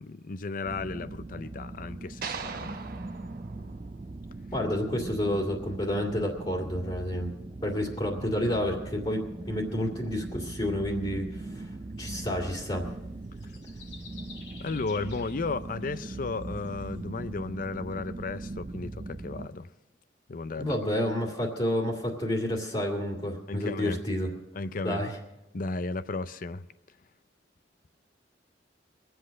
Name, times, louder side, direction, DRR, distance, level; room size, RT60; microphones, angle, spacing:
voice 1, 0.0-2.8 14.6-19.7 20.3-20.7 23.5-24.0 24.5-25.0 25.5-26.6, left 3 dB, 50° left, 0.6 m, -34 dB
sound 1, 0.6-19.5, right 2 dB, 30° right, 0.4 m, -40 dB
sound 2, 2.2-4.6, right 5 dB, 55° right, 1.1 m, -40 dB
voice 2, 4.5-7.3 7.6-11.7 12.0-12.9 20.6-24.3 24.8-25.2, left 1 dB, 30° left, 2.1 m, -30 dB
sound 3, 13.2-17.0, left 4 dB, 85° left, 4.3 m, -50 dB
22.5 x 7.9 x 6.3 m
head